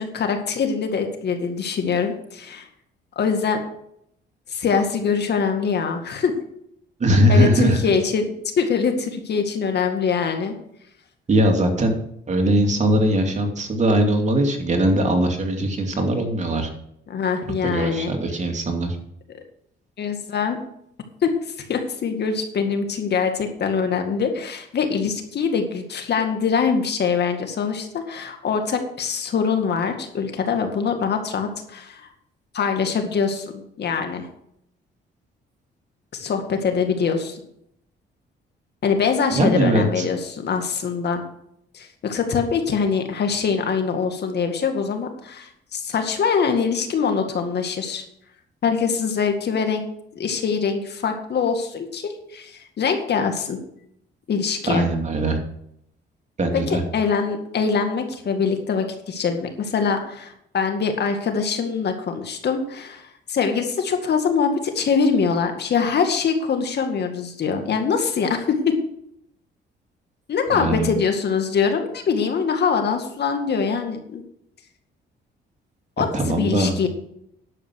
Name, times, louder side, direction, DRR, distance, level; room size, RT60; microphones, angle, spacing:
voice 1, 0.0-2.7 3.2-3.6 4.5-6.3 7.3-8.3 8.6-10.5 17.1-18.1 20.0-20.6 21.2-21.3 21.7-32.1 32.5-33.5 33.8-34.3 36.1-37.4 38.8-41.2 41.7-48.0 48.6-49.9 50.2-53.6 54.3-54.8 56.7-68.6 70.3-74.2 76.0-76.9, left 6 dB, 55° left, 5 dB, 2.1 m, -23 dB
voice 2, 7.0-7.8 11.3-12.0 12.3-16.7 17.6-19.0 39.3-40.1 54.7-55.4 56.4-56.8 70.5-70.9 76.1-76.7, right 1 dB, 35° right, 3 dB, 2.8 m, -20 dB
11.0 x 7.5 x 6.3 m, 0.73 s
cardioid pair, 90°, 20 cm